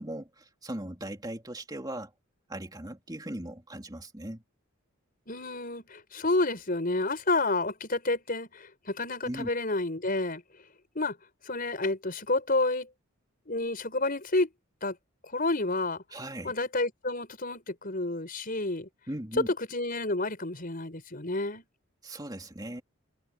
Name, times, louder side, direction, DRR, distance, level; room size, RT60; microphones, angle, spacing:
voice 1, 0.0-2.1 2.5-4.4 9.2-9.5 16.1-16.5 19.1-19.5 22.0-22.8, right 1 dB, 20° right, 3.2 m, -38 dB
voice 2, 5.3-10.4 11.0-11.2 11.5-12.9 13.5-14.5 14.8-15.0 15.3-16.0 16.4-18.9 19.7-21.6, left 2 dB, 40° left, 5.7 m, -30 dB
head